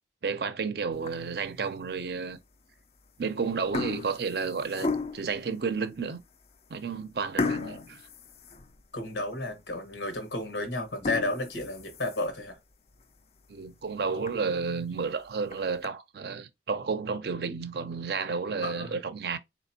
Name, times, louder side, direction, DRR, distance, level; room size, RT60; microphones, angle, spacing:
voice 1, 0.2-2.4 3.2-6.2 6.7-8.0 13.5-19.4, right 5 dB, 60° right, 0.5 m, -31 dB
sound 1, 0.9-1.5 2.0-2.1 3.0-3.2 3.5-5.4 6.0-6.1 6.4-6.6 7.4-9.1 9.5-9.6 10.1-10.2 10.8-12.5 12.9-13.0 13.4-13.5 13.9-14.0 14.3-14.4 15.3-15.9, left 3 dB, 35° left, 0.4 m, -34 dB
voice 2, 7.4-7.9 8.9-12.6 18.6-19.0, left 2 dB, 90° left, 1.5 m, -33 dB
4.1 x 2.9 x 2.8 m
head